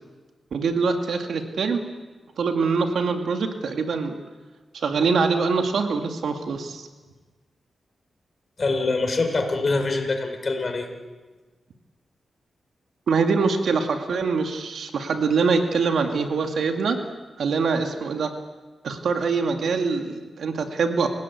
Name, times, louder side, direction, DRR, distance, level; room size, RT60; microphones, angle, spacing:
voice 1, 0.5-1.8 2.4-4.1 4.7-6.9 13.1-17.0 17.4-18.3 18.8-21.1, right 4 dB, 80° right, 5 dB, 2.1 m, -24 dB
voice 2, 8.6-10.9, left 3 dB, 45° left, 4 dB, 4.7 m, -24 dB
28.5 x 16.5 x 8.5 m, 1.3 s
cardioid pair, 70°, 0 cm